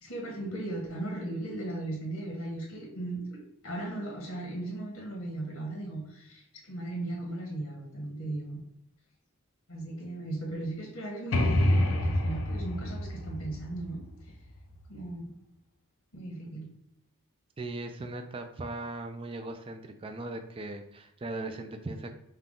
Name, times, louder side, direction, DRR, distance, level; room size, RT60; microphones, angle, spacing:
voice 1, 0.0-6.4 6.7-8.6 9.7-14.0 14.9-15.3 16.1-16.7, right 2 dB, 90° left, -2 dB, 1.2 m, -37 dB
sound 1, 11.3-15.0, left 1 dB, 65° left, 0.6 m, -28 dB
voice 2, 17.6-22.1, right 2 dB, 25° right, 6 dB, 0.3 m, -38 dB
5.6 x 2.3 x 3.7 m, 0.79 s
head